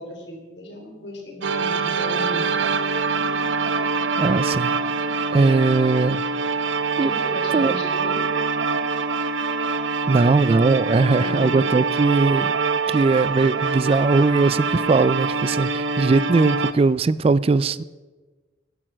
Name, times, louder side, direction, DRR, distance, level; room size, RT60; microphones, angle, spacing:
voice 1, 0.0-2.5 7.0-8.2 11.1-11.6, left 1 dB, 70° left, 2 dB, 3.5 m, -35 dB
sound 1, 1.4-16.7, right 4 dB, 85° right, 0.8 m, -24 dB
voice 2, 4.2-4.7 5.3-6.2 7.0-7.1 7.5-7.7 10.1-12.5 12.9-17.8, right 3 dB, 30° right, 18 dB, 0.3 m, -19 dB
14.0 x 11.0 x 6.2 m, 1.3 s
head